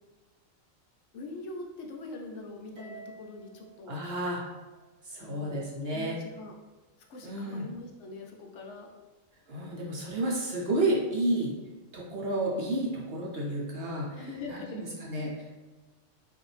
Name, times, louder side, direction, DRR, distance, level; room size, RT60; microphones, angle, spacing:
voice 1, 1.1-3.9 5.2-5.7 5.9-6.5 7.1-8.9 14.1-15.0, left 3 dB, 65° left, 1 dB, 0.9 m, -42 dB
Harp, 2.8-5.2, right 4 dB, 70° right, 1.2 m, -51 dB
voice 2, 3.9-4.4 5.1-6.2 7.2-7.7 9.5-11.5 11.9-14.2 14.5-15.3, right 1 dB, 55° right, -3 dB, 0.9 m, -31 dB
5.1 x 2.6 x 3.2 m, 1.2 s
omnidirectional pair, 1.4 m